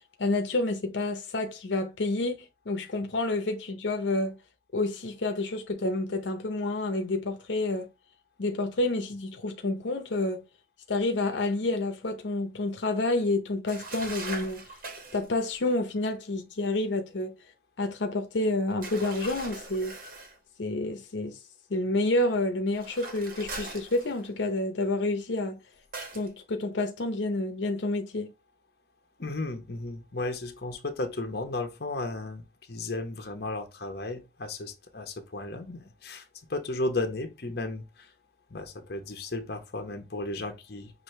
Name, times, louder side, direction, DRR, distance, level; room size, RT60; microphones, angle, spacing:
voice 1, 0.2-4.4 4.7-7.9 8.4-10.4 10.9-14.6 15.1-17.3 17.8-20.0 20.6-21.4 21.7-25.6 26.1-28.3, left 2 dB, 85° left, 0.7 m, -29 dB
sound 1, 13.7-15.3 18.8-20.4 22.7-24.5 25.9-26.3, right 2 dB, 50° right, 1.3 m, -41 dB
voice 2, 29.2-38.1 38.5-40.9, left 2 dB, 60° left, 0.9 m, -34 dB
6.2 x 2.6 x 3.2 m
head